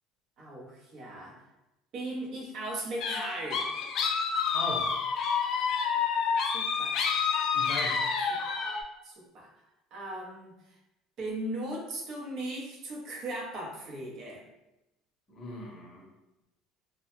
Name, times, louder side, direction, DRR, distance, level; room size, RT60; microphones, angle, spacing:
voice 1, 0.4-1.3 1.9-3.7 6.5-7.0 8.3-8.4 9.0-9.5 9.9-10.5 11.2-14.4, right 1 dB, 55° right, -2 dB, 0.7 m, -38 dB
sound 1, 3.0-8.8, left 6 dB, 55° left, 0.3 m, -29 dB
voice 2, 4.5-4.9 7.5-8.0 15.3-16.1, left 1 dB, 30° left, -1 dB, 0.7 m, -38 dB
2.1 x 2.1 x 3.0 m, 0.93 s
supercardioid pair, 110°, 0 cm